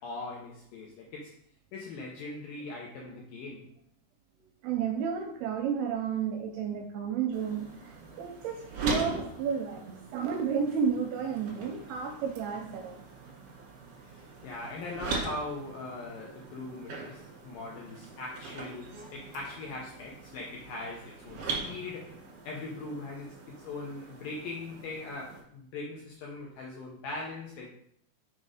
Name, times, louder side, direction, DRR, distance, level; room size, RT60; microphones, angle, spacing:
voice 1, 0.0-1.3 1.7-3.7 14.1-22.2 22.4-27.7, left 2 dB, 75° left, -2 dB, 2.0 m, -40 dB
voice 2, 4.4-13.0, right 7 dB, 80° right, 3 dB, 2.2 m, -32 dB
sound 1, 7.3-25.4, right 3 dB, 65° right, 1.5 m, -41 dB
6.2 x 4.3 x 5.0 m, 0.68 s
omnidirectional pair, 4.9 m